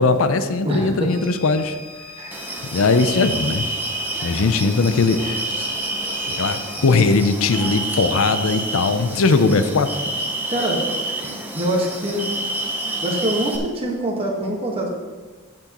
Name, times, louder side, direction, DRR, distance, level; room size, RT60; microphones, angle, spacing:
voice 1, 0.0-1.8 2.7-3.7 4.2-5.4 6.4-9.9, left 3 dB, 70° left, 10 dB, 0.5 m, -19 dB
voice 2, 0.6-1.1 2.2-2.4 10.5-10.8 11.5-12.3 13.0-14.9, right 1 dB, 25° right, -1 dB, 1.4 m, -24 dB
sound 1, 1.1-6.9, left 4 dB, 40° left, 1.9 m, -39 dB
sound 2, 2.3-13.6, right 2 dB, 10° right, 0.8 m, -28 dB
15.0 x 6.1 x 3.0 m, 1.3 s
head